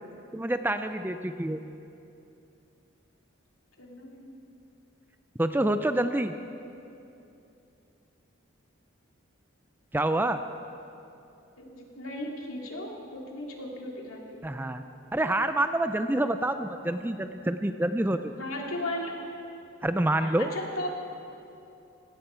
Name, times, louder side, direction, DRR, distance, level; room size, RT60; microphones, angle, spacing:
voice 1, 0.3-1.6 5.4-6.3 9.9-10.4 14.4-14.8 15.1-18.3 19.8-20.5, right 1 dB, 10° right, 9 dB, 0.4 m, -27 dB
voice 2, 3.8-4.3 11.6-14.4 18.4-19.2 20.2-20.9, left 1 dB, 85° left, -1 dB, 2.6 m, -36 dB
17.5 x 17.0 x 4.5 m, 2.7 s
head